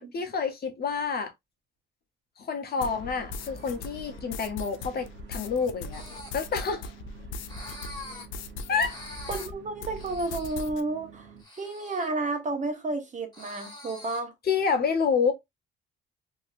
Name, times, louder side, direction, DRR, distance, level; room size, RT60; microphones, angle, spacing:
voice 1, 0.0-1.3 2.4-6.0 6.3-6.9 8.7-9.0 14.4-15.3, left 5 dB, 50° left, 0.9 m, -28 dB
sound 1, 2.8-9.5 9.8-10.8, left 3 dB, 80° left, 0.5 m, -39 dB
sound 2, 2.8-11.4, right 5 dB, 60° right, 0.9 m, -50 dB
sound 3, 5.9-6.3 7.5-8.3 8.8-9.5 10.0-10.5 11.4-12.1 13.3-14.2, left 2 dB, 20° left, 1.7 m, -44 dB
voice 2, 9.3-11.3 11.6-14.3, right 2 dB, 40° right, 1.0 m, -31 dB
2.9 x 2.7 x 2.5 m
cardioid pair, 90°, 20 cm